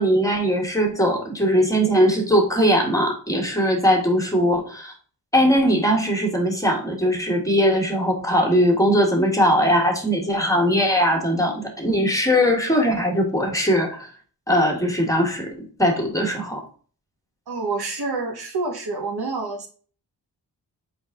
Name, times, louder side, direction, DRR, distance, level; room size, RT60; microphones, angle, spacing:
voice 1, 0.0-4.9 5.3-14.1 14.5-16.6, equal, 10° left, 1 dB, 1.4 m, -20 dB
voice 2, 17.5-19.7, right 3 dB, 65° right, 2 dB, 1.2 m, -27 dB
4.0 x 3.5 x 3.6 m, 0.41 s
cardioid pair, 45°, 42 cm